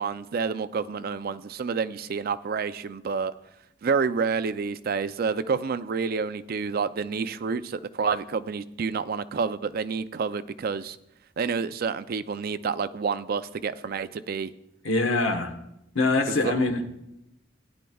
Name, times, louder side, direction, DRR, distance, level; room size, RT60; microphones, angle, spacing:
voice 1, 0.0-3.3 3.8-11.0 11.4-14.5 16.3-16.5, right 5 dB, 50° right, 0.4 m, -29 dB
voice 2, 14.8-15.6 15.9-17.0, left 2 dB, 85° left, 1.2 m, -24 dB
17.0 x 10.5 x 2.3 m
head